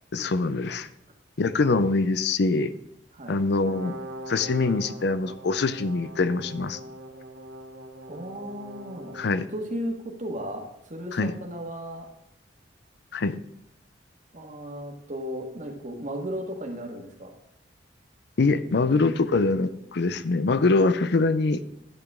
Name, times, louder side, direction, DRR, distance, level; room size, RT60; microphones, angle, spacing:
voice 1, 0.1-0.9 1.4-2.7 3.3-4.0 4.3-6.8 9.1-9.5 11.1-11.3 13.1-13.4 18.4-21.6, left 3 dB, 65° left, 13 dB, 0.5 m, -24 dB
Brass instrument, 3.5-9.3, right 1 dB, 75° right, 1.6 m, -41 dB
voice 2, 8.1-9.2 9.5-12.1 14.3-17.3, equal, 45° right, 3 dB, 1.6 m, -35 dB
11.5 x 8.1 x 3.6 m, 0.78 s
head